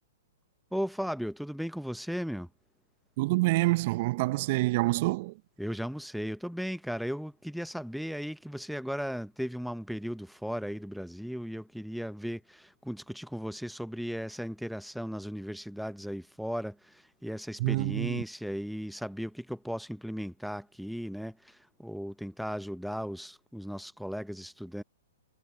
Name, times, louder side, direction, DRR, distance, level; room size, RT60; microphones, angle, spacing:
voice 1, 0.7-2.5 5.6-24.8, equal, ahead, 0.8 m, -36 dB
voice 2, 3.2-5.4 17.6-18.2, right 21 dB, 45° right, 0.8 m, -27 dB
figure-of-eight pair, 115°, 0 cm